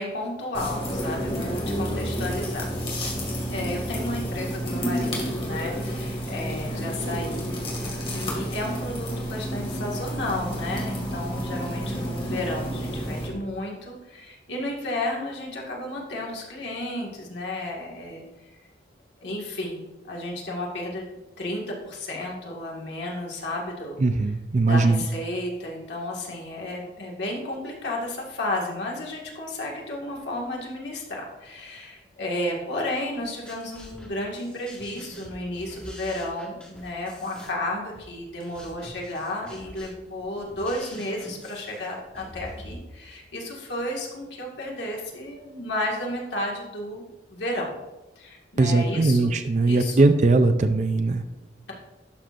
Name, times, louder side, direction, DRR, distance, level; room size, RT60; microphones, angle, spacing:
voice 1, 0.0-2.7 3.4-18.5 19.2-24.0 24.6-47.0 47.3-47.7 48.2-49.3 49.6-50.0, left 1 dB, 70° left, -2 dB, 1.8 m, -32 dB
sound 1, 0.5-13.3, equal, 30° left, 2.1 m, -30 dB
voice 2, 24.0-25.1 48.6-51.2, right 3 dB, 40° right, 8 dB, 0.4 m, -20 dB
sound 2, 33.2-42.8, equal, 5° left, 1.6 m, -45 dB
11.5 x 6.0 x 2.5 m, 1.0 s
head